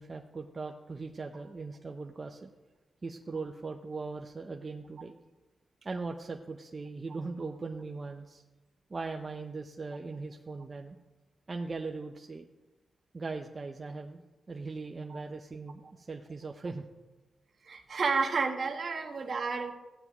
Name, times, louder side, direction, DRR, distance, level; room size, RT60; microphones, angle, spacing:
voice 1, 0.0-2.5 3.0-5.1 5.8-8.4 8.9-11.0 11.5-12.5 13.1-14.2 14.5-16.8, right 3 dB, 30° right, 2 dB, 0.6 m, -39 dB
voice 2, 17.7-19.7, right 4 dB, 55° right, 3 dB, 1.2 m, -31 dB
15.5 x 9.4 x 3.0 m, 1.1 s
wide cardioid pair, 125°, 0 cm